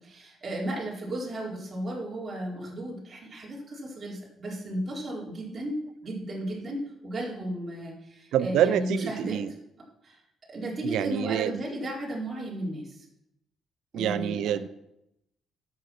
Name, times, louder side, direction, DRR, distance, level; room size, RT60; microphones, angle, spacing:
voice 1, 0.0-9.6 10.0-10.2 10.5-13.0 13.9-14.6, right 1 dB, 35° right, -4 dB, 4.1 m, -34 dB
voice 2, 8.3-9.5 10.8-11.6 13.9-14.7, right 10 dB, 85° right, 15 dB, 0.7 m, -27 dB
11.0 x 7.7 x 6.0 m, 0.83 s
cardioid pair, 90°, 0 cm